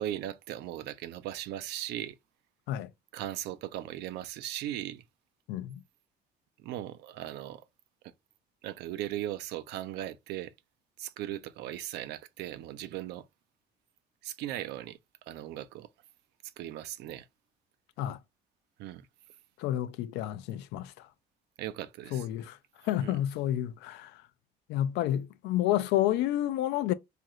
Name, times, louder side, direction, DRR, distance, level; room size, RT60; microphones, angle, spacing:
voice 1, 0.0-2.2 3.1-5.0 6.6-7.6 8.6-10.5 11.0-13.3 14.2-15.0 15.3-15.9 16.6-17.3 18.8-19.1 21.6-22.3 23.0-23.2, right 13 dB, 85° right, 0.4 m, -38 dB
voice 2, 5.5-5.8 18.0-18.2 19.6-21.1 22.1-22.6 22.8-24.2 24.7-26.9, left 12 dB, 90° left, 0.4 m, -30 dB
2.7 x 2.5 x 3.0 m
cardioid pair, 110°, 17 cm